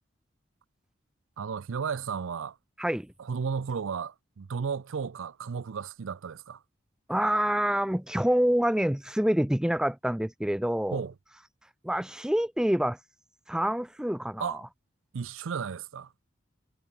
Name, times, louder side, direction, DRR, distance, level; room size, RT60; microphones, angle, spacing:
voice 1, 1.4-2.6 3.2-6.6 10.9-11.1 14.4-14.6 15.1-16.1, right 6 dB, 85° right, 0.5 m, -34 dB
voice 2, 7.1-11.0 11.8-13.0 13.5-14.6, equal, 5° right, 0.4 m, -26 dB
head